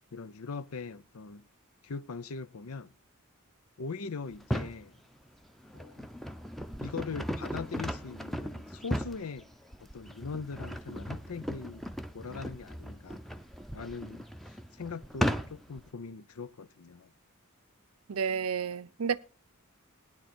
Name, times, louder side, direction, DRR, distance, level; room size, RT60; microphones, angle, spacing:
voice 1, 0.1-1.4 1.8-2.9 3.8-5.0 5.7-6.1 6.8-9.5 9.9-11.9 12.1-13.2 13.7-17.1, left 4 dB, 80° left, 0.7 m, -41 dB
sound 1, 4.3-4.8 5.5-15.8, equal, ahead, 0.7 m, -37 dB
voice 2, 18.1-19.2, right 6 dB, 75° right, 0.6 m, -31 dB
16.5 x 10.5 x 4.4 m
head